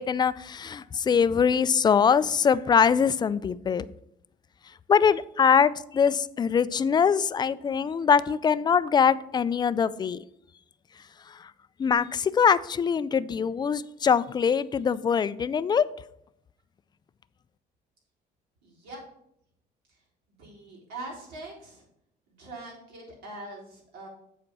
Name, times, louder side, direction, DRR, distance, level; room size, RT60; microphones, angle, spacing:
voice 1, 0.0-3.8 4.9-10.2 11.3-11.5 11.8-15.8, left 6 dB, 25° left, 16 dB, 0.3 m, -23 dB
voice 2, 18.6-19.0 19.9-20.0 20.4-21.9 22.3-24.1, right 2 dB, 80° right, -4 dB, 3.7 m, -42 dB
7.8 x 4.4 x 6.0 m, 0.75 s
cardioid pair, 110°, 17 cm